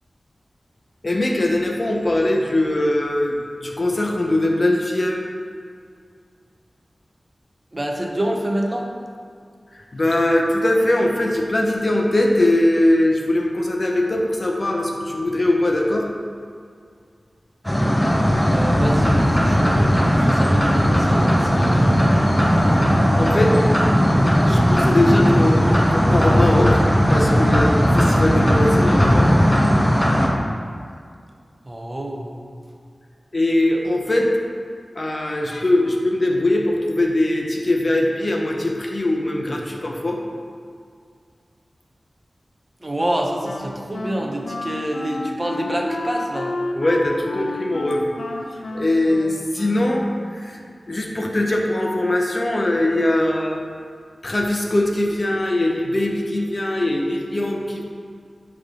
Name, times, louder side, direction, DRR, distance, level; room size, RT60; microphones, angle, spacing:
voice 1, 1.0-3.4 3.6-5.2 9.7-16.1 23.1-23.5 24.4-26.8 27.1-29.3 33.3-34.3 34.9-40.2 46.7-48.0 48.7-50.6 50.9-53.6 54.2-57.8, left 1 dB, 45° left, 0 dB, 0.9 m, -21 dB
voice 2, 7.7-8.9 18.5-21.9 31.7-32.4 42.8-46.6, right 1 dB, 35° right, 1 dB, 0.9 m, -27 dB
sound 1, 17.6-30.3, equal, 10° left, 1.2 m, -17 dB
Wind instrument woodwind instrument, 43.0-50.4, left 2 dB, 85° left, 0.6 m, -31 dB
9.4 x 3.6 x 3.8 m, 2.2 s
cardioid pair, 50°, 0 cm